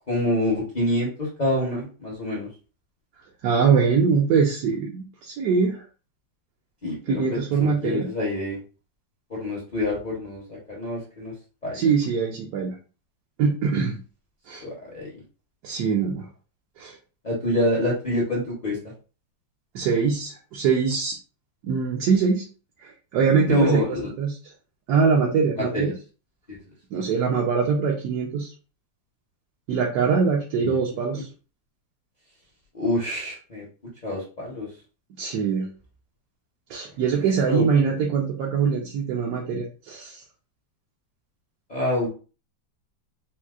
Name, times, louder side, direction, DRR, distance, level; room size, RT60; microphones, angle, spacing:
voice 1, 0.1-2.5 6.8-8.6 9.3-11.3 11.6-11.8 14.6-15.1 17.2-18.8 23.5-24.1 25.7-25.9 30.6-30.8 31.1-31.2 32.7-33.6 34.0-34.7 37.5-37.8 41.7-42.1, left 1 dB, 45° left, -5 dB, 0.6 m, -26 dB
voice 2, 3.4-5.8 7.1-8.1 11.7-12.8 13.4-14.0 14.5-14.7 15.6-16.3 16.8-17.0 19.7-21.1 21.6-22.5 22.8-24.4 24.9-25.9 26.9-28.5 29.7-31.3 35.2-35.7 36.7-40.2, right 5 dB, 70° right, -1 dB, 1.1 m, -23 dB
4.3 x 2.0 x 2.3 m, 0.35 s
omnidirectional pair, 2.0 m